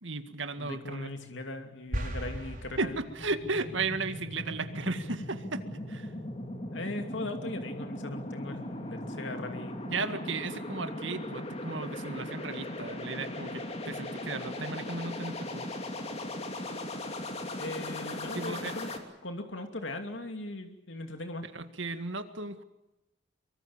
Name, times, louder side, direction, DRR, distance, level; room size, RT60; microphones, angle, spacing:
voice 1, 0.0-1.1 2.8-6.1 9.9-15.7 18.3-18.8 21.5-22.6, right 3 dB, 75° right, 9 dB, 1.9 m, -35 dB
voice 2, 0.6-2.9 6.7-9.8 17.6-18.9 19.2-21.5, left 2 dB, 75° left, 5 dB, 2.7 m, -39 dB
sound 1, 1.9-3.5, equal, 45° right, 5.3 m, -37 dB
sound 2, 2.5-19.0, left 1 dB, 30° left, 2.8 m, -38 dB
24.5 x 24.0 x 7.3 m, 0.95 s
head